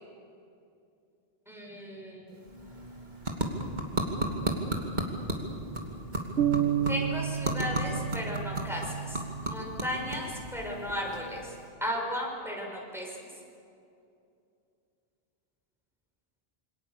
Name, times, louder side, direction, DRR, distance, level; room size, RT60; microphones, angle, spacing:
voice 1, 1.5-2.4 6.9-11.5 11.8-13.2, equal, ahead, -2 dB, 6.4 m, -35 dB
sound 1, 2.3-11.7, right 1 dB, 45° right, 2.8 m, -35 dB
sound 2, 6.4-10.1, right 9 dB, 85° right, 1.4 m, -31 dB
27.5 x 24.5 x 7.0 m, 2.6 s
omnidirectional pair, 1.0 m